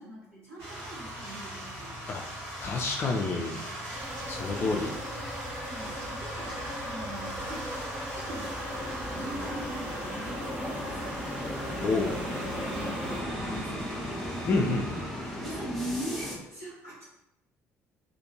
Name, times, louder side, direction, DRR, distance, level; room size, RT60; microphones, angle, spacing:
voice 1, 0.0-2.0 3.2-3.8 4.5-4.9 5.6-8.6 9.1-11.2 12.7-13.9 15.4-17.0, right 1 dB, 80° right, -8 dB, 1.1 m, -41 dB
sound 1, 0.6-15.6, right 1 dB, 65° right, 1.1 m, -40 dB
voice 2, 2.6-3.6 4.3-4.9 11.8-12.1 14.5-15.0, left 3 dB, 35° left, 0 dB, 0.4 m, -28 dB
sound 2, 3.9-13.2, left 1 dB, 20° right, 0.9 m, -39 dB
sound 3, 8.7-16.4, equal, ahead, 0.7 m, -37 dB
2.5 x 2.5 x 2.7 m, 0.88 s
figure-of-eight pair, 55°, 8 cm